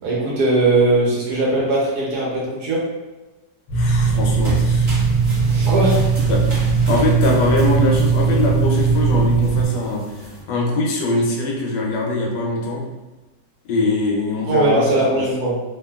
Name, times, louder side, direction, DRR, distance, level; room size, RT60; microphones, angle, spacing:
voice 1, 0.0-2.9 5.5-6.0 14.5-15.6, right 2 dB, 70° right, -4 dB, 1.1 m, -19 dB
voice 2, 3.7-5.0 6.3-12.8 13.7-14.9 15.1-15.2, left 2 dB, 75° left, -1 dB, 1.2 m, -22 dB
sound 1, 3.7-9.7, right 5 dB, 60° left, 1.0 m, -18 dB
sound 2, 4.0-10.4, right 1 dB, 30° right, 0.8 m, -34 dB
2.8 x 2.5 x 2.2 m, 1.1 s
omnidirectional pair, 1.9 m